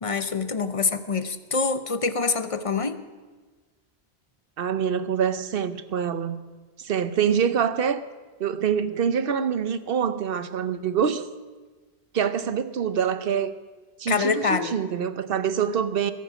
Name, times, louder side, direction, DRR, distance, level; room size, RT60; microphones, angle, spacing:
voice 1, 0.0-3.0 14.1-14.7, left 4 dB, 35° left, 0.7 m, -25 dB
voice 2, 4.6-6.4 6.8-8.0 8.4-11.3 12.1-13.5 14.0-16.1, right 7 dB, 65° right, 0.9 m, -25 dB
21.5 x 10.0 x 5.0 m
omnidirectional pair, 1.1 m